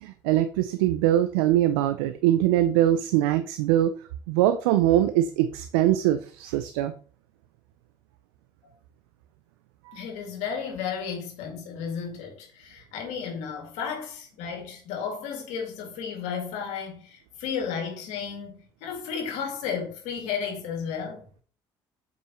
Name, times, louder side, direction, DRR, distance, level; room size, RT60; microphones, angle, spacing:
voice 1, 0.0-3.9 4.3-6.9 9.9-10.0, right 12 dB, 85° right, 0.5 m, -22 dB
voice 2, 9.9-21.2, left 6 dB, 75° left, 2.3 m, -33 dB
7.5 x 5.4 x 3.1 m
hypercardioid pair, 65°, 12 cm